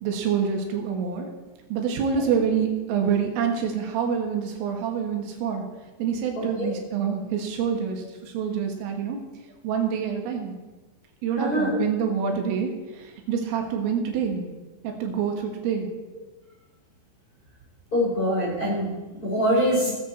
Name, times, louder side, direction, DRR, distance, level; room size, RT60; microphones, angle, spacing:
voice 1, 0.0-1.3 1.7-5.7 6.0-9.3 9.6-10.6 11.2-14.4 14.8-15.9 19.4-19.5, right 7 dB, 90° right, 2 dB, 4.3 m, -26 dB
voice 2, 6.4-6.7 11.4-11.8 17.9-18.9 19.2-19.9, equal, 20° left, -6 dB, 3.6 m, -24 dB
19.0 x 7.7 x 4.4 m, 1.2 s
omnidirectional pair, 5.7 m